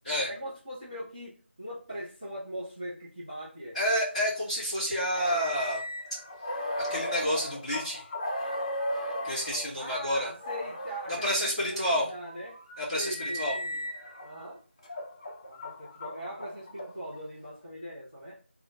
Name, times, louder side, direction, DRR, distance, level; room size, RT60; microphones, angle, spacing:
voice 1, 0.3-3.8 9.8-12.6 12.9-13.9 14.2-14.6 15.4-18.4, equal, 20° right, -12 dB, 1.0 m, -40 dB
voice 2, 3.7-5.8 6.8-8.1 9.2-10.3 11.1-12.1 12.8-13.6, equal, 5° left, -12 dB, 1.7 m, -29 dB
sound 1, 5.1-9.7 10.4-11.2 11.9-14.3 14.8-17.2, left 1 dB, 20° left, 0.7 m, -36 dB
3.6 x 2.4 x 3.1 m, 0.35 s
figure-of-eight pair, 170°, 7 cm